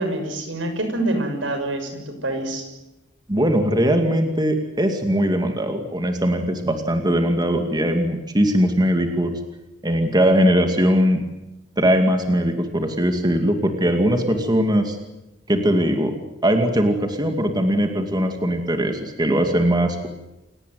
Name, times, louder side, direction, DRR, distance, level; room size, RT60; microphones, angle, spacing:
voice 1, 0.0-2.7, right 1 dB, 85° right, 7 dB, 6.4 m, -26 dB
voice 2, 3.3-9.3 9.8-11.2 11.8-15.0 15.5-16.2 16.4-20.1, equal, 20° right, 5 dB, 2.5 m, -20 dB
28.5 x 18.0 x 9.5 m, 0.97 s
head